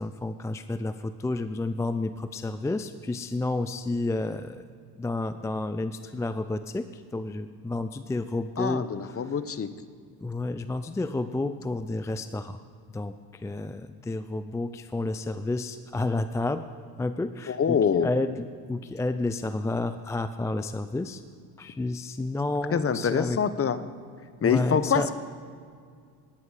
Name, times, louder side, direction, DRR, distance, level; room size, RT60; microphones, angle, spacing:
voice 1, 0.0-4.6 5.0-9.2 10.2-12.6 12.9-16.6 17.0-21.2 21.6-23.4 24.4-25.1, left 2 dB, 5° left, 11 dB, 0.3 m, -30 dB
voice 2, 8.6-9.7 17.5-18.1 22.7-23.8 24.4-25.1, left 7 dB, 30° left, 13 dB, 0.9 m, -25 dB
19.5 x 9.4 x 4.9 m, 2.1 s
supercardioid pair, 75°, 48 cm